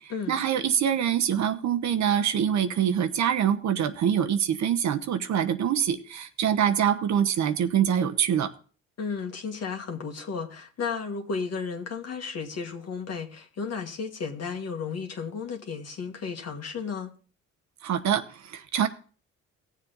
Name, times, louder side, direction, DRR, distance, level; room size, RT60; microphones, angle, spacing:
voice 1, 0.3-8.5 17.8-18.9, right 9 dB, 65° right, 1.0 m, -25 dB
voice 2, 9.0-17.1, left 5 dB, 55° left, 1.7 m, -33 dB
17.0 x 7.4 x 3.9 m
cardioid pair, 90°, 30 cm